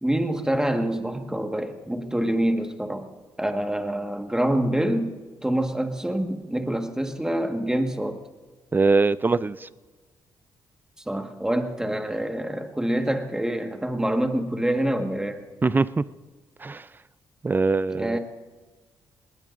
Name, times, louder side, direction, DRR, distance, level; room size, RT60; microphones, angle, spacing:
voice 1, 0.0-3.1 3.4-5.1 5.4-8.2 11.1-15.4 17.9-18.2, right 1 dB, 5° right, 5 dB, 1.6 m, -26 dB
voice 2, 8.7-9.7 15.6-16.0 16.6-16.8 17.4-18.2, right 3 dB, 25° right, 17 dB, 0.5 m, -22 dB
20.0 x 19.5 x 2.6 m, 1.3 s
cardioid pair, 70°, 8 cm